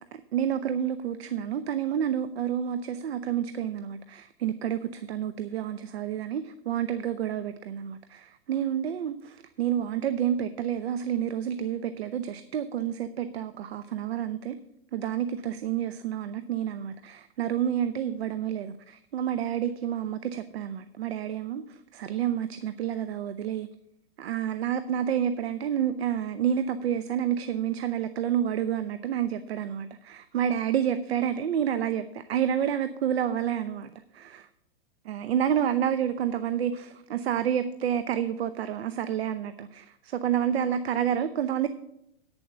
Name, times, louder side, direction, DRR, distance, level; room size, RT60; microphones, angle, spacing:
voice 1, 0.1-14.6 14.9-23.7 24.2-34.5 35.1-41.7, right 9 dB, 85° right, 12 dB, 0.7 m, -29 dB
9.3 x 7.1 x 6.5 m, 0.80 s
hypercardioid pair, 160°, 30 cm